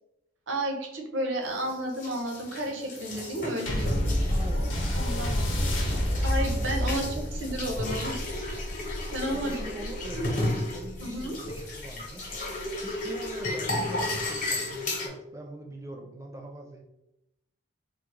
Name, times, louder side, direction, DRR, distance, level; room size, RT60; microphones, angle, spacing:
voice 1, 0.5-3.9 4.5-4.7 4.9-5.4 6.2-8.2 8.8-9.7 10.2-10.3 11.0-11.4, right 1 dB, 80° right, 3 dB, 0.7 m, -32 dB
sound 1, 1.4-15.1, left 2 dB, 40° left, 0.8 m, -34 dB
sound 2, 3.7-12.4 13.2-13.3, equal, 75° left, 0.7 m, -30 dB
voice 2, 4.3-6.2 7.0-7.3 9.3-16.8, right 1 dB, 15° right, 2 dB, 0.4 m, -43 dB
3.5 x 2.1 x 3.1 m, 0.87 s
head